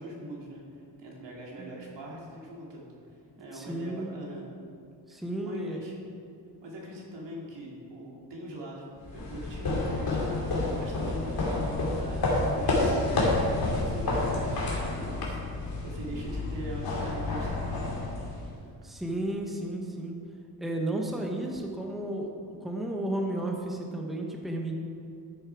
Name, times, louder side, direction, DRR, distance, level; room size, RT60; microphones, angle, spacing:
voice 1, 0.0-2.8 3.4-4.5 5.1-5.9 6.6-17.8, right 1 dB, 85° right, -4 dB, 2.9 m, -42 dB
voice 2, 3.5-4.1 5.1-5.8 18.8-20.2 20.6-24.7, right 1 dB, ahead, 0 dB, 0.9 m, -33 dB
sound 1, 9.0-18.7, left 2 dB, 60° left, 2.6 m, -29 dB
13.0 x 7.4 x 4.7 m, 2.5 s
wide cardioid pair, 175°, 42 cm